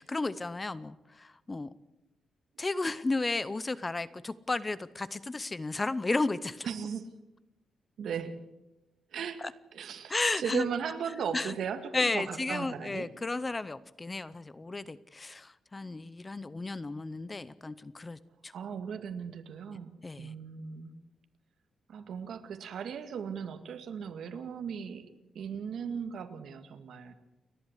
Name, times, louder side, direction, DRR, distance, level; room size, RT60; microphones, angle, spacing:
voice 1, 0.0-1.7 2.6-6.7 9.4-9.5 10.1-10.6 11.3-11.5 11.9-18.5 20.0-20.3, left 3 dB, 20° left, 17 dB, 0.6 m, -33 dB
voice 2, 6.6-7.1 8.0-8.4 9.1-9.4 9.7-13.1 18.5-20.9 21.9-27.1, right 7 dB, 65° right, 8 dB, 2.1 m, -37 dB
30.0 x 11.5 x 8.2 m, 0.98 s
wide cardioid pair, 160°, 0 cm